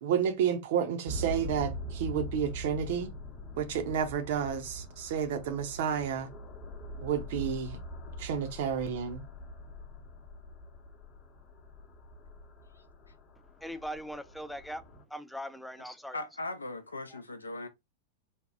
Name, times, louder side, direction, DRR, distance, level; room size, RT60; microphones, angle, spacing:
voice 1, 0.0-3.1 3.6-6.3 7.0-7.8 8.2-9.2, right 8 dB, 55° right, 0.6 m, -31 dB
sound 1, 1.1-15.0, left 1 dB, 35° left, 0.7 m, -43 dB
voice 2, 13.6-14.8 15.1-16.2, equal, 5° left, 0.3 m, -40 dB
voice 3, 16.1-17.7, left 2 dB, 80° left, 0.4 m, -38 dB
3.4 x 2.3 x 2.6 m
figure-of-eight pair, 90°, 0 cm